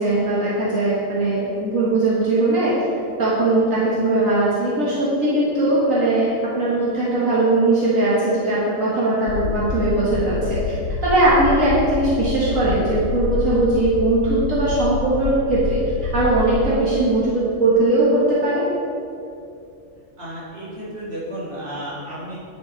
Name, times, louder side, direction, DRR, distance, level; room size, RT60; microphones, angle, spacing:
voice 1, 0.0-2.8 3.2-10.7 11.0-15.8 16.1-18.6, right 2 dB, 70° right, -8 dB, 2.0 m, -19 dB
sound 1, 9.3-16.7, left 5 dB, 90° left, 1.1 m, -27 dB
voice 2, 20.2-22.4, right 1 dB, 50° right, -7 dB, 2.4 m, -33 dB
9.6 x 5.7 x 4.2 m, 2.6 s
omnidirectional pair, 1.5 m